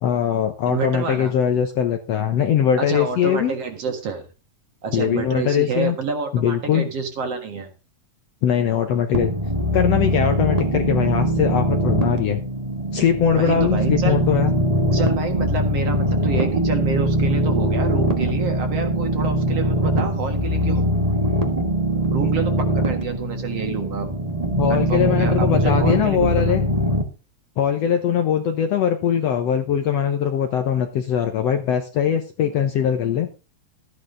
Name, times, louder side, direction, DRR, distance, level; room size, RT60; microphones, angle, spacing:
voice 1, 0.0-3.5 4.9-6.0 6.3-6.9 8.4-9.3 9.7-12.4 12.9-14.5 24.6-26.6 27.6-33.3, left 8 dB, 65° left, 6 dB, 1.7 m, -21 dB
voice 2, 0.7-1.3 2.8-4.3 4.8-7.7 13.3-14.2 14.9-20.9 22.1-24.2 24.7-26.6, right 5 dB, 55° right, 5 dB, 2.4 m, -28 dB
sound 1, 9.1-27.0, right 1 dB, 35° right, 0.6 m, -22 dB
13.5 x 9.7 x 3.8 m, 0.31 s
omnidirectional pair, 3.8 m